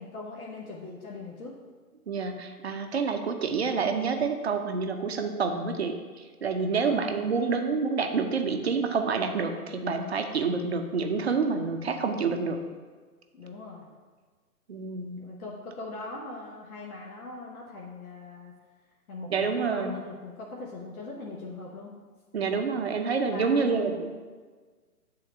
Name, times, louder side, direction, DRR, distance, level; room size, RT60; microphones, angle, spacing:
voice 1, 0.0-1.5 6.6-7.0 13.3-13.9 15.2-18.5 19.1-21.9 23.2-23.8, left 3 dB, 65° left, -4 dB, 1.1 m, -40 dB
voice 2, 2.1-12.6 14.7-15.2 19.3-20.0 22.3-24.1, right 5 dB, 45° right, 6 dB, 0.6 m, -28 dB
8.8 x 3.8 x 3.3 m, 1.5 s
figure-of-eight pair, 135°, 46 cm